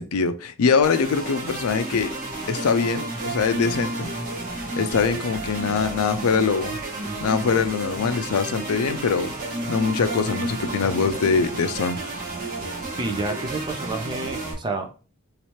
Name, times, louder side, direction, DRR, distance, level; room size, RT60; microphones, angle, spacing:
voice 1, 0.0-2.2 2.5-4.1 4.8-6.8 7.2-9.3 9.7-12.0, left 5 dB, 80° left, 0.4 m, -23 dB
sound 1, 0.8-14.5, right 2 dB, 40° right, 1.3 m, -31 dB
voice 2, 13.0-15.0, right 2 dB, 20° right, 0.5 m, -29 dB
3.2 x 2.8 x 3.1 m
head